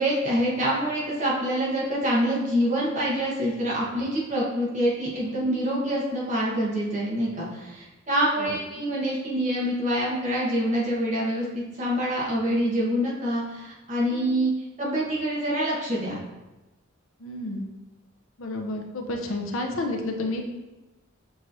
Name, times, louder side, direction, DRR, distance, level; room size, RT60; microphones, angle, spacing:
voice 1, 0.0-14.5 14.8-16.2, equal, 35° right, -5 dB, 1.1 m, -26 dB
voice 2, 17.2-17.6 18.4-20.5, left 2 dB, 75° left, 3 dB, 0.6 m, -30 dB
6.1 x 3.1 x 2.6 m, 1.1 s
head